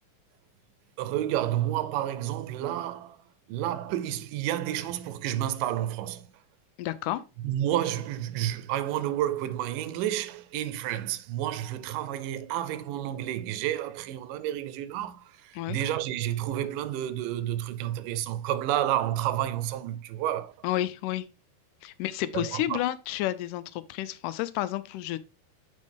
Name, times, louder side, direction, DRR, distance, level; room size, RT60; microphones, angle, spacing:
voice 1, 1.0-3.2 3.5-6.3 7.4-20.5 22.3-22.8, right 12 dB, 90° right, 2.2 m, -30 dB
voice 2, 6.8-7.2 15.6-15.8 20.6-21.3 21.8-25.2, left 14 dB, 85° left, 2.1 m, -31 dB
7.2 x 5.3 x 3.4 m
omnidirectional pair, 3.8 m